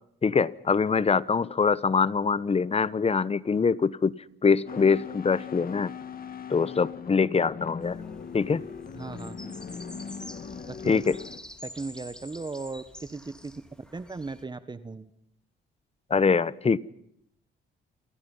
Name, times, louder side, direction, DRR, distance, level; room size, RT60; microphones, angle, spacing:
voice 1, 0.2-4.1 4.4-5.9 6.5-8.0 8.3-8.7 10.9-11.2 16.1-16.8, left 5 dB, 30° left, 19 dB, 1.1 m, -24 dB
sound 1, 4.7-11.4, left 6 dB, 45° left, 2.6 m, -40 dB
sound 2, 7.8-14.4, equal, 5° left, 3.6 m, -48 dB
voice 2, 8.9-9.5 10.7-11.2 11.6-13.5 13.9-15.1, right 3 dB, 20° right, 12 dB, 1.5 m, -37 dB
29.0 x 27.0 x 5.7 m, 0.71 s
cardioid pair, 90°, 20 cm